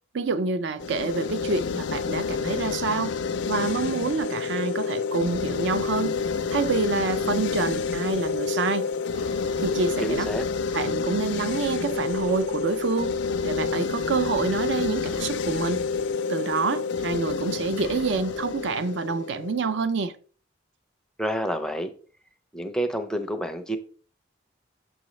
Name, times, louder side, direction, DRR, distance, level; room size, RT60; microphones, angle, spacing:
voice 1, 0.1-3.2 3.5-6.2 6.5-8.9 9.6-10.3 10.7-13.1 13.4-15.8 16.3-20.2, right 4 dB, 65° right, 0.4 m, -27 dB
sound 1, 0.8-19.9, left 5 dB, 65° left, 0.4 m, -28 dB
sound 2, 9.1-10.2 12.1-13.2 15.1-16.2 17.8-18.8, equal, 85° right, 2.7 m, -46 dB
voice 2, 10.0-10.4 21.2-21.9 22.5-23.8, equal, 5° left, 0.5 m, -28 dB
6.8 x 4.9 x 3.1 m
head